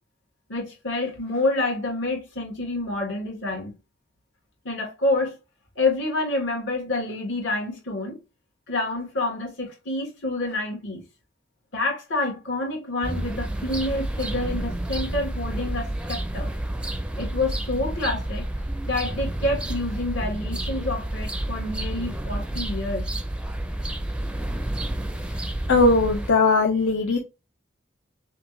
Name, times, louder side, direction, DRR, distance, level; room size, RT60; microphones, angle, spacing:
voice 1, 0.5-3.8 4.6-5.4 5.8-8.2 8.7-11.0 11.7-16.5 17.2-18.5 18.9-23.1, left 2 dB, 70° left, 1.9 m, -28 dB
sound 1, 13.0-26.3, right 1 dB, 5° right, 0.4 m, -30 dB
voice 2, 25.3-27.2, left 3 dB, 85° left, 0.8 m, -20 dB
5.8 x 2.5 x 3.1 m
head